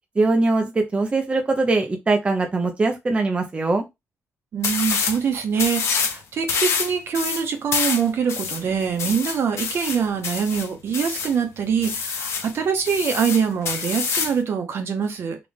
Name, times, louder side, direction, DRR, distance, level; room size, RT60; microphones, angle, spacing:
voice 1, 0.2-3.8, right 3 dB, 25° right, 0.7 m, -21 dB
voice 2, 4.5-15.4, right 7 dB, 60° right, 1.0 m, -24 dB
sound 1, 4.6-5.2 5.6-6.2 6.5-11.4 11.8-12.5 12.9-14.4, left 6 dB, 70° left, 0.8 m, -26 dB
3.7 x 2.4 x 3.4 m
cardioid pair, 120°, 5 cm